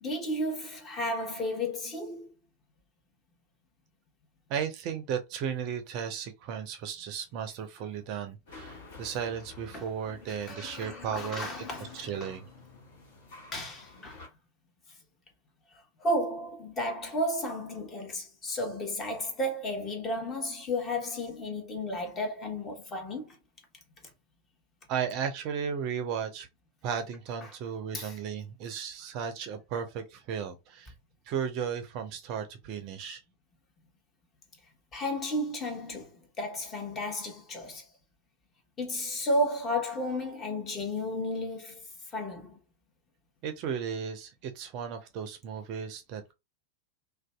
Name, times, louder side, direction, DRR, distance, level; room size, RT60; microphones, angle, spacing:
voice 1, 0.0-2.3 9.7-9.9 10.3-12.4 13.5-14.3 16.0-23.4 27.4-27.5 27.9-28.2 34.9-37.9 38.8-41.9 42.1-42.6, left 1 dB, 25° left, 0.9 m, -33 dB
voice 2, 4.5-11.7 11.9-12.5 24.9-26.5 26.8-30.9 31.3-33.2 43.4-46.3, right 7 dB, 40° right, 0.4 m, -35 dB
sound 1, 8.5-14.3, left 4 dB, 55° left, 1.1 m, -49 dB
2.5 x 2.2 x 2.3 m
figure-of-eight pair, 90°, 0 cm